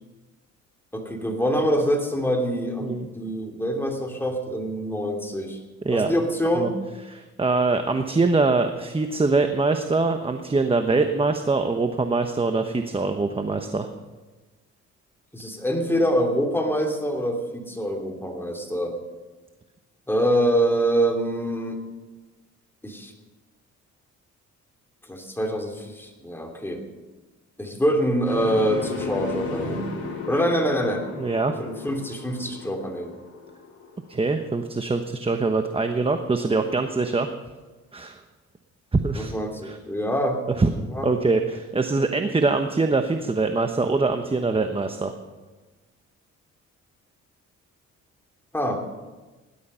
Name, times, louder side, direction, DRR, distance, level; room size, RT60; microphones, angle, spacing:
voice 1, 0.9-5.6 5.9-6.8 15.3-18.9 20.1-21.8 22.8-23.1 25.1-26.8 27.6-29.9 30.3-31.1 31.6-33.1 39.1-40.4 40.8-41.1 48.5-48.8, equal, 5° left, 1 dB, 3.1 m, -25 dB
voice 2, 7.0-13.9 31.2-31.5 34.1-37.3 37.9-38.2 38.9-39.3 39.6-39.8 40.6-40.7 41.0-45.1, right 3 dB, 20° right, 7 dB, 1.0 m, -23 dB
sound 1, 28.2-34.2, left 4 dB, 50° left, 4.2 m, -34 dB
17.5 x 11.5 x 5.7 m, 1.2 s
cardioid pair, 90°, 30 cm